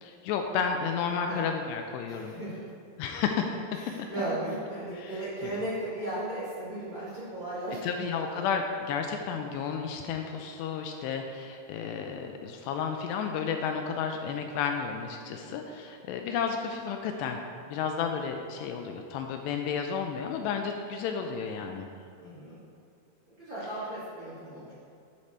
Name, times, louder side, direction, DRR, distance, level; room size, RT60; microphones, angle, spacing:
voice 1, 0.0-2.4 3.0-3.6 5.0-5.6 7.8-17.4 17.7-21.9, left 6 dB, 80° left, 4 dB, 2.6 m, -32 dB
voice 2, 2.1-2.6 3.7-8.4 15.3-15.6 22.2-22.6 23.4-24.7, right 1 dB, 35° right, -9 dB, 2.0 m, -36 dB
12.0 x 6.6 x 4.3 m, 2.5 s
omnidirectional pair, 5.1 m